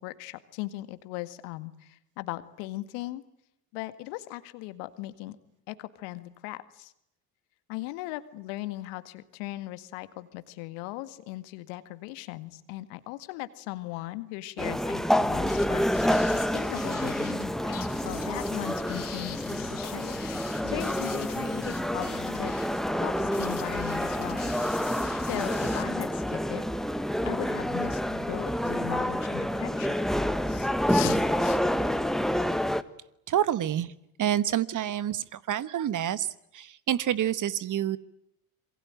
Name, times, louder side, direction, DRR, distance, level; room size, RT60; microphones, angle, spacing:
voice 1, 0.0-3.2 3.7-5.4 5.7-6.9 7.7-17.5 18.0-20.1 20.6-22.5 23.0-24.4 24.9-26.6 27.2-29.9 30.5-31.6, left 18 dB, 65° left, 13 dB, 2.0 m, -38 dB
sound 1, 14.6-32.8, equal, ahead, 1.4 m, -28 dB
sound 2, 15.5-25.8, left 8 dB, 45° left, 3.6 m, -43 dB
voice 2, 33.3-33.9 34.2-36.3 36.5-38.0, right 11 dB, 40° right, 17 dB, 1.3 m, -27 dB
26.5 x 23.0 x 9.0 m, 0.80 s
hypercardioid pair, 70°, 47 cm